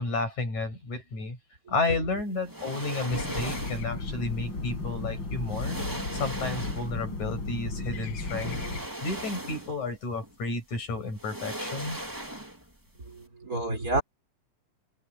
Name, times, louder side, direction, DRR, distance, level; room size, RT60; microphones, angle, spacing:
voice 1, 0.0-1.4 1.7-8.6 9.0-12.0, left 3 dB, 80° left, 9.4 m, -32 dB
sound 1, 2.4-4.0 5.0-5.1 5.5-7.1 8.2-9.9 10.2-10.3 11.1-12.8 13.0-13.2, right 1 dB, 10° right, 2.0 m, -38 dB
sound 2, 3.1-8.8, left 3 dB, 40° left, 5.6 m, -34 dB
voice 2, 13.0-14.0, right 2 dB, 30° right, 4.7 m, -30 dB
omnidirectional pair, 3.3 m